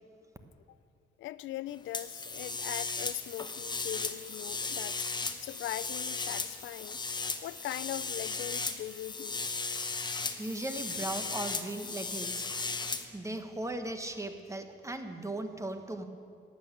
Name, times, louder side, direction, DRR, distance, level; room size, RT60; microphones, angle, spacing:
voice 1, 1.2-5.0 5.4-7.0 7.4-9.6, left 14 dB, 75° left, 17 dB, 0.4 m, -40 dB
sound 1, 1.9-13.0, left 3 dB, 20° left, 1.0 m, -36 dB
voice 2, 10.2-16.1, right 2 dB, 15° right, 7 dB, 1.3 m, -38 dB
12.0 x 8.9 x 8.9 m, 2.4 s
cardioid pair, 90°, 20 cm